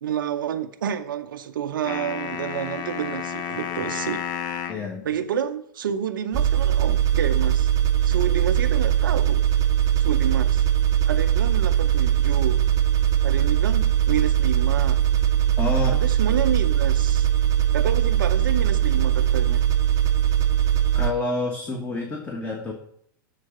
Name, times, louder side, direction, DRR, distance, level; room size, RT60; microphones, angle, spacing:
voice 1, 0.0-4.2 5.0-7.7 8.0-9.5 10.0-10.6 11.0-12.6 13.2-15.0 16.0-17.3 17.7-19.7, right 8 dB, 90° right, 0.5 m, -29 dB
sound 1, 1.9-4.9, left 8 dB, 40° left, 0.6 m, -31 dB
voice 2, 4.7-5.1 15.6-16.0 20.9-22.7, left 2 dB, 15° left, 1.2 m, -28 dB
sound 2, 6.3-21.1, right 10 dB, 35° right, 0.6 m, -20 dB
7.4 x 3.9 x 6.3 m
hypercardioid pair, 115°, 11 cm